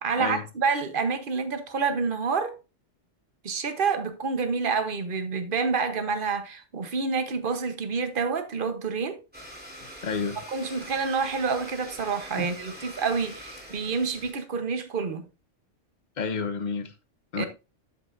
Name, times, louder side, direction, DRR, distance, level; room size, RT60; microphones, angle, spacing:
voice 1, 0.0-2.5 3.4-9.2 10.5-15.3 17.4-17.5, right 5 dB, 45° right, 1.2 m, -28 dB
Domestic sounds home sounds, 9.3-14.3, equal, 10° right, 2.5 m, -44 dB
voice 2, 10.0-10.4 12.4-12.5 16.2-16.9 17.3-17.5, left 5 dB, 40° left, 1.0 m, -30 dB
13.0 x 5.4 x 2.6 m
omnidirectional pair, 1.3 m